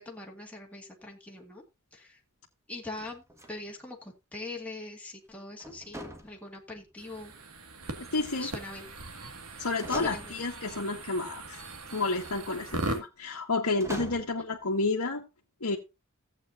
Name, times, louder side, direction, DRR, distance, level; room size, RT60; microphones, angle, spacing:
voice 1, 0.0-1.6 1.9-2.2 2.7-3.2 3.5-7.3 8.4-8.9 9.9-10.4 14.4-14.5, left 2 dB, 5° left, 2.1 m, -42 dB
sound 1, 3.0-3.8 5.6-6.9 7.9-8.7 9.4-9.5 9.8-10.6 11.9-12.3 13.8-14.4, equal, 15° right, 1.6 m, -43 dB
sound 2, 7.0-13.0, right 2 dB, 80° right, 2.0 m, -39 dB
voice 2, 8.1-8.5 9.6-11.6 11.9-15.2 15.6-15.8, left 3 dB, 70° left, 1.5 m, -30 dB
15.5 x 8.2 x 2.7 m
head